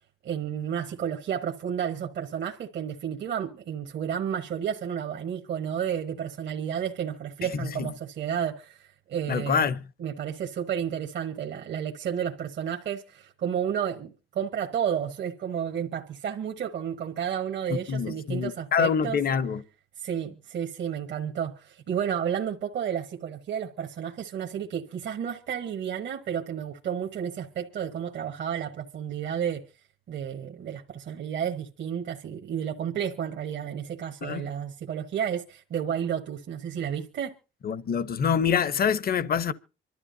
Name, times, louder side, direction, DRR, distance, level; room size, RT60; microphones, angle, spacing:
voice 1, 0.2-9.7 10.0-19.2 20.0-29.6 30.1-37.3, right 8 dB, 65° right, 1.4 m, -31 dB
voice 2, 9.3-9.8 17.9-19.6 34.2-34.4 37.6-39.5, left 7 dB, 50° left, 0.8 m, -25 dB
25.5 x 12.5 x 2.7 m
cardioid pair, 90°, 20 cm